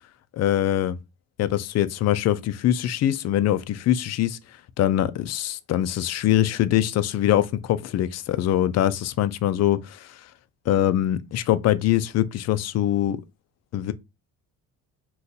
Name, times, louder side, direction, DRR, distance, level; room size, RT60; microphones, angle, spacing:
voice 1, 0.3-1.0 1.4-4.4 4.8-10.2 10.7-13.2 13.7-13.9, left 12 dB, 50° left, 0.4 m, -23 dB
2.5 x 2.3 x 3.9 m
cardioid pair, 90°, 36 cm